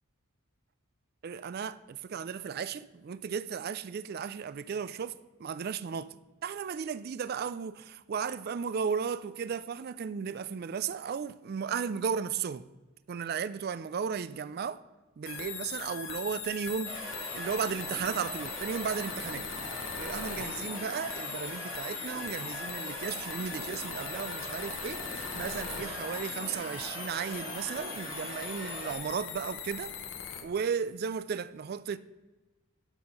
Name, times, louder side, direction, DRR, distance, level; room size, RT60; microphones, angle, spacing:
voice 1, 1.2-6.2 6.4-12.7 13.1-14.8 15.2-19.5 19.9-30.0 30.4-32.0, right 6 dB, 45° right, 0.3 m, -35 dB
sound 1, 15.3-30.4, left 7 dB, 60° left, 0.9 m, -40 dB
sound 2, 16.8-28.9, right 2 dB, 25° right, 1.9 m, -42 dB
12.0 x 4.5 x 5.4 m
head